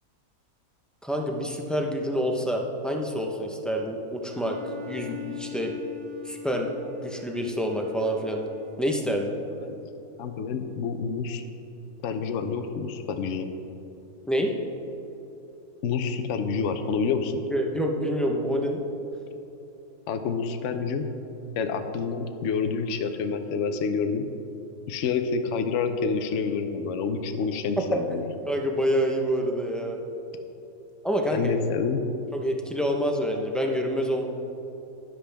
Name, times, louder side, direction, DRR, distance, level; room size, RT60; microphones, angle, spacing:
voice 1, 1.0-4.6 4.9-5.7 6.2-6.7 7.0-8.4 8.8-9.3 14.3-14.5 17.5-18.8 28.5-30.0 31.0-31.6 32.3-34.2, equal, ahead, 0 dB, 0.6 m, -27 dB
Bowed string instrument, 4.3-9.0, left 7 dB, 55° right, 0.4 m, -41 dB
voice 2, 10.2-11.4 12.0-13.5 15.8-17.4 20.1-21.1 21.6-24.2 24.9-28.3 31.3-32.0, left 5 dB, 60° left, 7 dB, 0.9 m, -28 dB
12.5 x 10.5 x 3.5 m, 2.9 s
omnidirectional pair, 1.6 m